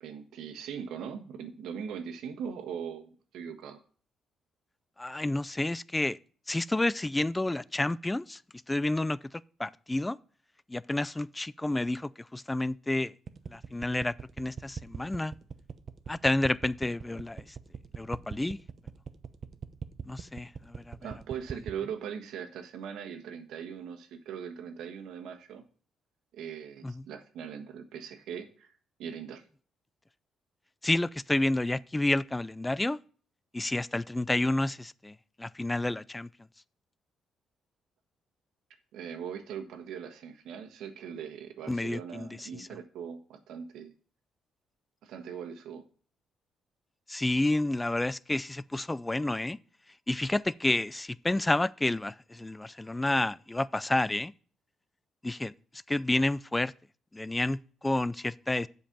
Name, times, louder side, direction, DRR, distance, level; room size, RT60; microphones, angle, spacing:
voice 1, 0.0-3.8 21.0-25.6 26.3-28.7 29.0-29.4 38.9-43.9 45.0-45.8, right 7 dB, 85° right, 1.3 m, -40 dB
voice 2, 5.0-6.2 6.5-8.4 8.7-9.2 9.6-10.2 10.7-13.1 13.5-15.3 16.1-17.4 18.0-18.6 20.0-21.0 26.8-26.9 30.8-33.0 33.5-36.3 41.7-42.7 47.1-49.6 50.1-54.3 55.2-55.5 55.9-56.7 57.1-58.7, left 2 dB, 15° left, 0.3 m, -30 dB
sound 1, 13.3-21.8, right 6 dB, 45° right, 0.8 m, -40 dB
7.5 x 5.3 x 6.8 m
cardioid pair, 90°, 0 cm